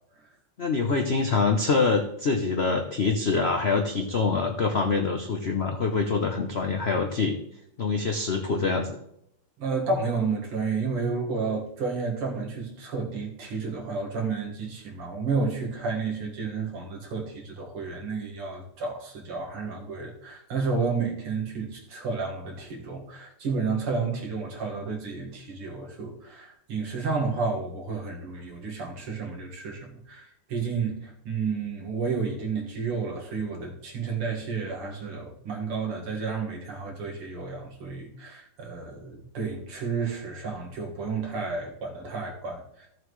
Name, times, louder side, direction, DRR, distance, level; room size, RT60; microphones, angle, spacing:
voice 1, 0.6-7.4 7.8-9.0, left 4 dB, 80° left, 3 dB, 0.5 m, -25 dB
voice 2, 9.6-42.9, right 4 dB, 85° right, -1 dB, 2.7 m, -31 dB
14.5 x 7.4 x 3.2 m, 0.76 s
omnidirectional pair, 2.4 m